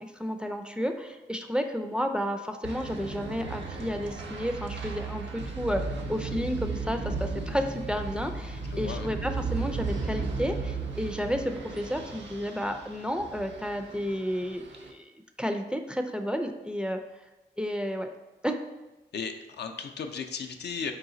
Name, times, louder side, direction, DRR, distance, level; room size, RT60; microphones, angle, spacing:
voice 1, 0.0-15.1 15.4-17.0 17.6-18.1 18.4-18.6, equal, 5° right, 5 dB, 0.4 m, -32 dB
sound 1, 2.6-14.9, right 4 dB, 80° right, 0.5 m, -35 dB
voice 2, 8.7-9.1 19.1-20.9, left 6 dB, 65° left, 5 dB, 0.4 m, -35 dB
4.0 x 2.3 x 3.8 m, 1.1 s
cardioid pair, 40°, 18 cm